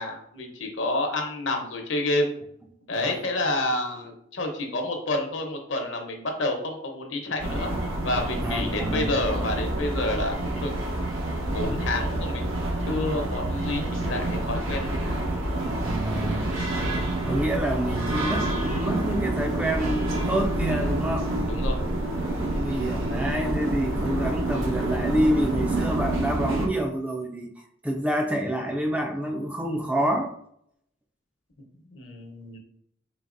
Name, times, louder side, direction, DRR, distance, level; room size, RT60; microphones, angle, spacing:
voice 1, 0.0-2.3 2.9-7.7 8.0-10.7 11.5-12.6 12.8-15.3 16.5-16.7 21.4-21.8 31.9-32.6, left 2 dB, 70° left, 3 dB, 0.9 m, -29 dB
sound 1, 7.4-26.7, right 1 dB, 90° right, 0.9 m, -28 dB
voice 2, 8.4-9.2 15.6-16.5 17.3-21.3 22.4-27.5 27.8-30.3, right 1 dB, 5° right, 3 dB, 0.3 m, -28 dB
3.9 x 3.8 x 2.5 m, 0.70 s
head